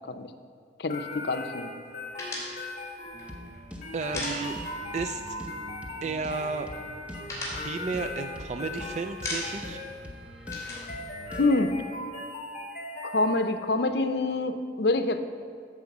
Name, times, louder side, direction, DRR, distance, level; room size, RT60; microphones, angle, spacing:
voice 1, 0.8-1.7 4.1-4.2 11.4-11.7 13.0-15.2, left 2 dB, 70° left, 9 dB, 0.7 m, -26 dB
sound 1, 0.9-13.7, left 2 dB, 45° left, 1.7 m, -39 dB
sound 2, 2.2-5.0 5.2-5.4 5.7-6.4 6.7-8.7 9.0-9.8 10.1-11.9, left 1 dB, 20° left, 3.2 m, -38 dB
sound 3, 3.1-11.6, equal, 5° right, 0.9 m, -44 dB
voice 2, 3.9-4.6 4.9-5.4 6.0-6.7 7.5-9.8, right 4 dB, 40° right, 8 dB, 0.3 m, -33 dB
14.0 x 4.9 x 7.2 m, 2.3 s
head